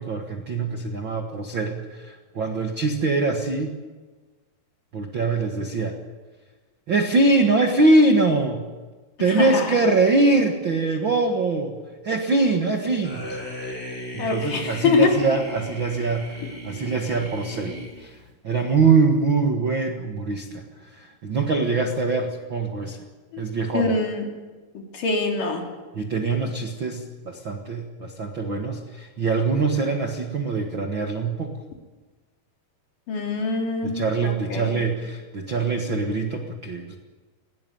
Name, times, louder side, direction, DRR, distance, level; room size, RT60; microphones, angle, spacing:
voice 1, 0.0-3.8 4.9-6.0 6.9-8.6 9.2-11.8 12.0-13.3 14.1-18.2 18.4-23.0 23.4-23.9 25.9-31.5 33.8-37.0, right 3 dB, 75° right, 4 dB, 1.1 m, -23 dB
sound 1, 13.0-18.3, left 1 dB, 15° left, 6.0 m, -37 dB
voice 2, 14.2-15.2 23.3-23.4 23.7-24.3 24.9-25.6 33.1-34.8, left 4 dB, 55° left, 2 dB, 4.3 m, -24 dB
21.0 x 18.0 x 9.2 m, 1.3 s
omnidirectional pair, 4.9 m